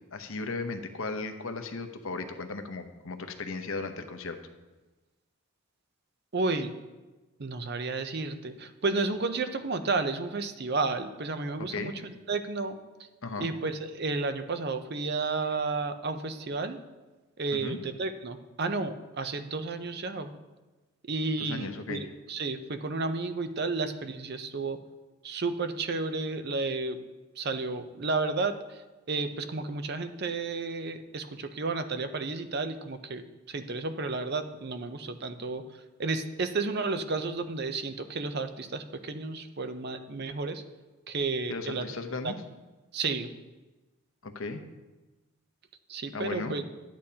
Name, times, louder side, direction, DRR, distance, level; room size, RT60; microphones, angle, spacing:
voice 1, 0.1-4.4 11.7-11.9 13.2-13.5 17.5-17.8 21.4-22.1 41.5-42.4 44.2-44.6 46.1-46.6, left 3 dB, 65° left, 7 dB, 0.8 m, -36 dB
voice 2, 6.3-6.7 7.4-12.8 13.4-16.8 17.4-20.3 21.1-24.8 25.2-27.0 27.4-28.8 29.1-35.6 36.0-40.6 41.1-41.9 42.2-42.3 42.9-43.3 45.9-46.6, right 3 dB, 45° right, 9 dB, 0.6 m, -32 dB
11.5 x 8.7 x 2.8 m, 1.2 s
head